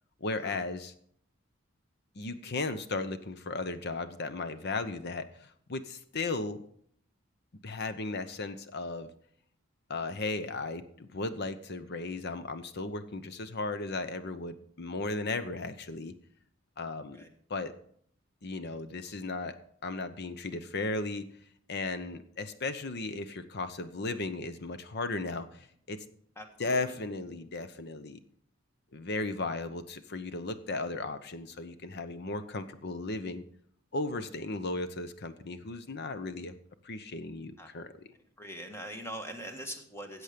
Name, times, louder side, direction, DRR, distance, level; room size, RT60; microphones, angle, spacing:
voice 1, 0.2-0.9 2.1-6.6 7.6-9.1 9.9-16.1 16.8-17.2 17.5-17.7 18.4-21.3 21.7-26.0 26.6-28.2 28.9-33.4 33.9-36.5 36.8-38.1, left 3 dB, 55° left, 11 dB, 0.9 m, -36 dB
voice 2, 26.4-27.0 37.6-37.7 38.4-40.2, equal, 15° left, 5 dB, 1.5 m, -42 dB
14.0 x 8.1 x 5.1 m, 0.63 s
head